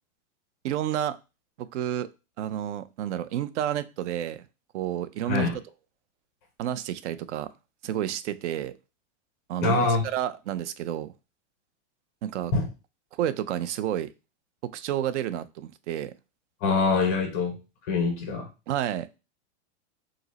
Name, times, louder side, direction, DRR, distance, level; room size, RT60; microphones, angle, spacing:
voice 1, 0.6-1.2 1.6-2.1 2.4-4.4 4.7-5.5 6.6-7.5 7.8-8.7 9.5-11.1 12.2-12.5 13.2-14.1 14.6-16.1 18.7-19.2, right 11 dB, 75° right, 14 dB, 0.5 m, -30 dB
voice 2, 9.6-10.0 12.5-12.7 16.6-17.6 17.8-18.5, left 4 dB, 15° left, 2 dB, 0.4 m, -24 dB
5.1 x 2.0 x 3.9 m, 0.30 s
supercardioid pair, 180°, 35 cm